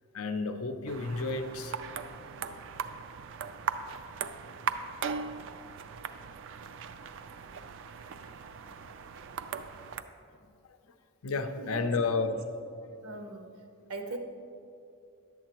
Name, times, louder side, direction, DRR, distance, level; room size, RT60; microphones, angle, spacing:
voice 1, 0.1-1.8 6.9-7.1 8.0-9.0 10.4-10.8 11.2-12.5 13.1-13.3, left 4 dB, 70° left, 8 dB, 0.5 m, -33 dB
sound 1, 0.9-10.0, right 6 dB, 55° right, 0.3 m, -39 dB
voice 2, 11.6-12.3 13.0-13.5 13.9-14.2, right 3 dB, 80° right, 4 dB, 0.8 m, -39 dB
11.0 x 7.4 x 3.0 m, 2.5 s
head